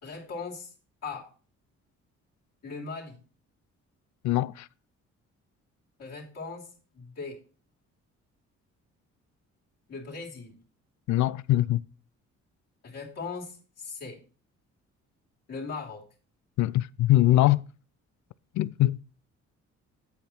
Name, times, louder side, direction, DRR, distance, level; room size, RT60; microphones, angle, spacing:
voice 1, 0.0-0.7 1.0-1.3 2.6-3.2 6.0-6.7 6.9-7.4 9.9-10.6 12.8-14.2 15.5-16.0, left 4 dB, 55° left, 3.0 m, -38 dB
voice 2, 4.2-4.7 11.1-11.8 16.6-17.6 18.5-19.0, left 15 dB, 70° left, 0.5 m, -22 dB
8.3 x 8.3 x 4.4 m
cardioid pair, 90°, 30 cm